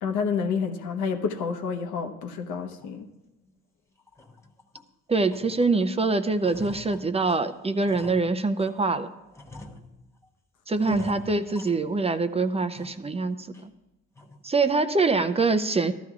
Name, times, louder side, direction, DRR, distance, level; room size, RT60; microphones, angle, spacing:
voice 1, 0.0-3.1 10.9-11.2, left 5 dB, 85° left, 5 dB, 1.0 m, -29 dB
sound 1, 2.8-3.0 3.4-3.6 4.0-4.9 5.3-5.9 6.2-8.8 9.3-10.3 10.8-12.2 12.6-13.2 13.5-13.6 14.2-14.5, left 2 dB, 10° left, 1.0 m, -47 dB
voice 2, 5.1-9.1 10.7-13.7 14.4-15.9, right 3 dB, 20° right, 10 dB, 0.5 m, -24 dB
14.5 x 12.5 x 2.4 m, 1.0 s
cardioid pair, 90°, 30 cm